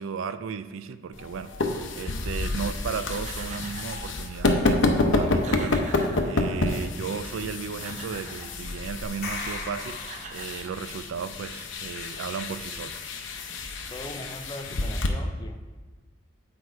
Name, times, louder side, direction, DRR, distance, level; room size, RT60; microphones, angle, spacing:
voice 1, 0.0-5.8 6.2-10.0 10.3-12.9, right 6 dB, 75° right, 12 dB, 0.4 m, -35 dB
sound 1, 1.1-15.1, left 2 dB, 65° left, 0.7 m, -29 dB
sound 2, 2.9-4.3 4.9-5.0 5.2-6.8 7.5-8.6 9.6-9.7 10.0-11.2, right 4 dB, 35° right, 0.6 m, -44 dB
sound 3, 9.0-11.0, left 3 dB, 50° left, 1.1 m, -38 dB
voice 2, 13.9-15.6, left 1 dB, 20° left, 5 dB, 0.5 m, -39 dB
8.3 x 4.8 x 4.5 m, 1.4 s
head